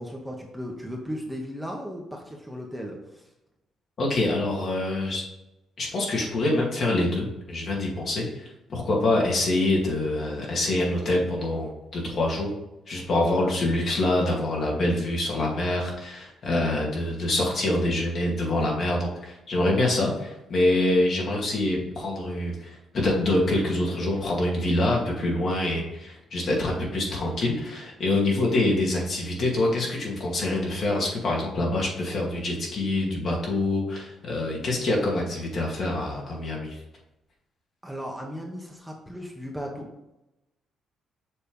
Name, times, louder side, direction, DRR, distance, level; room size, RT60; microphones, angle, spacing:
voice 1, 0.0-3.3 37.8-39.9, equal, 5° right, 0 dB, 1.1 m, -36 dB
voice 2, 4.0-5.3 5.8-12.5 12.9-36.8, left 2 dB, 50° left, -2 dB, 2.1 m, -25 dB
6.7 x 3.3 x 5.4 m, 0.92 s
cardioid pair, 90°, 0 cm